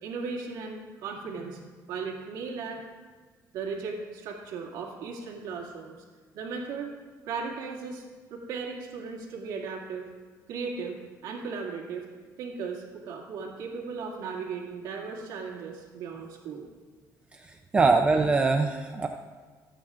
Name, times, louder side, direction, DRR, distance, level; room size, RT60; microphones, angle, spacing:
voice 1, 0.0-2.8 3.5-6.0 6.3-6.9 7.3-8.0 8.3-10.1 10.5-12.1 12.4-16.7, right 5 dB, 85° right, -2 dB, 2.2 m, -36 dB
voice 2, 17.3-19.1, right 3 dB, 15° right, 5 dB, 0.4 m, -23 dB
25.5 x 8.9 x 2.5 m, 1.5 s
cardioid pair, 165°, 7 cm